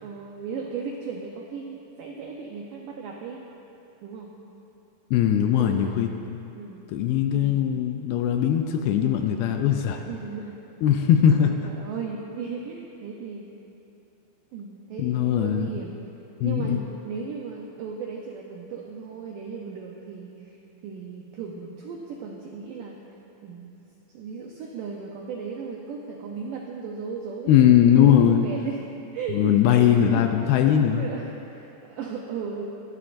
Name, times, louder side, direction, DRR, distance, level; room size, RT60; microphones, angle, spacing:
voice 1, 0.0-3.5 4.0-4.3 5.4-6.1 6.6-6.8 7.3-7.7 9.6-10.6 11.4-13.5 14.5-16.0 16.4-20.6 20.8-23.0 23.4-23.8 24.1-28.8 29.1-30.3 30.9-32.6, right 5 dB, 90° right, 0 dB, 1.9 m, -36 dB
voice 2, 5.1-6.4 6.9-10.0 10.8-11.5 15.0-15.7 16.4-16.8 27.5-28.5 29.3-31.1, left 9 dB, 80° left, 5 dB, 2.3 m, -20 dB
23.0 x 11.0 x 2.6 m, 2.9 s
omnidirectional pair, 4.8 m